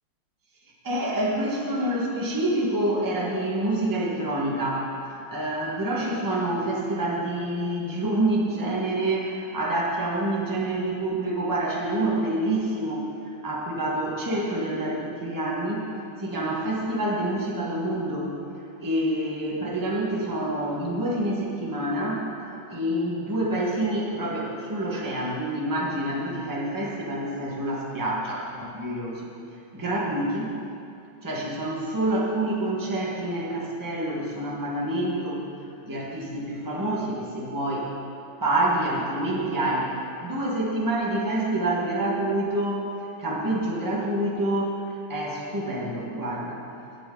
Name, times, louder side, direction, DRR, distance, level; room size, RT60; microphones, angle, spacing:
voice 1, 0.8-18.3 18.8-28.4 28.7-29.3 29.7-30.5 31.2-35.4 35.8-37.9 38.4-42.8 43.2-46.6, right 1 dB, 10° right, -4 dB, 1.4 m, -27 dB
19.0 x 6.7 x 3.9 m, 2.6 s
omnidirectional pair, 2.2 m